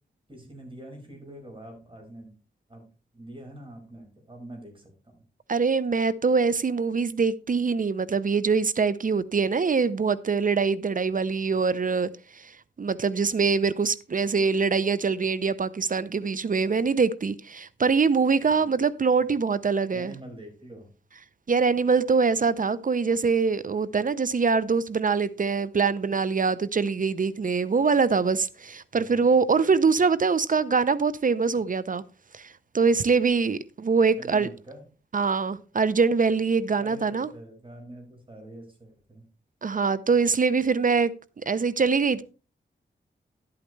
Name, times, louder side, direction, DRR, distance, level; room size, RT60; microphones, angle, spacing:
voice 1, 0.3-2.3 2.7-2.8 3.1-5.1 18.5-18.7 19.9-20.9 28.9-29.3 34.2-34.8 36.8-39.2, right 1 dB, 25° right, 5.1 m, -45 dB
voice 2, 5.5-12.5 12.8-20.1 21.5-32.0 32.3-34.5 35.1-37.3 39.6-41.1 41.5-42.2, right 5 dB, 45° right, 0.6 m, -24 dB
12.0 x 8.7 x 3.2 m
wide cardioid pair, 75°, 19 cm